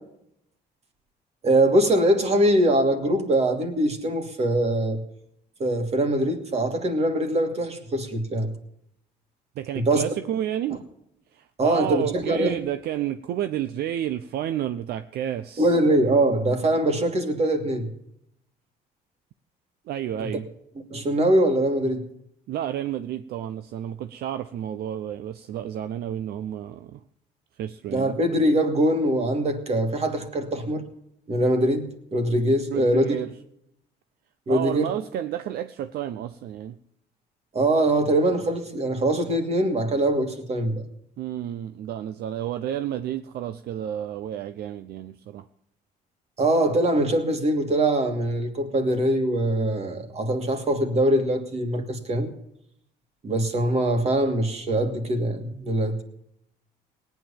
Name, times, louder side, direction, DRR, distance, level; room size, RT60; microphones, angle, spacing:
voice 1, 1.4-5.0 5.6-8.5 9.7-10.0 11.6-12.6 15.6-17.9 20.2-20.3 20.9-22.0 27.9-30.8 31.3-33.2 34.5-34.9 37.5-40.8 46.4-52.3 53.2-56.0, right 1 dB, 40° right, 2.7 m, -23 dB
voice 2, 9.6-10.8 11.3-15.8 19.9-20.5 22.5-27.0 27.6-28.1 32.7-33.3 34.5-36.8 41.2-45.4, right 11 dB, 70° right, 0.7 m, -31 dB
18.5 x 9.5 x 7.2 m
cardioid pair, 110°, 17 cm